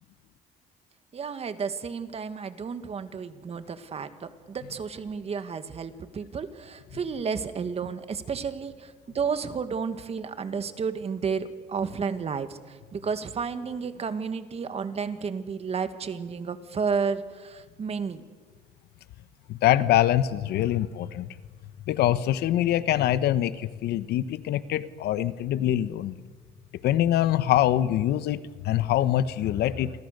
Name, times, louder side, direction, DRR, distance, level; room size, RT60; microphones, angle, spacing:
voice 1, 1.1-18.2, right 6 dB, 35° right, 10 dB, 1.8 m, -32 dB
voice 2, 19.5-21.3 21.9-26.1 26.8-29.9, left 12 dB, 75° left, 14 dB, 1.1 m, -24 dB
29.0 x 24.0 x 6.7 m, 1.5 s
cardioid pair, 110°, 17 cm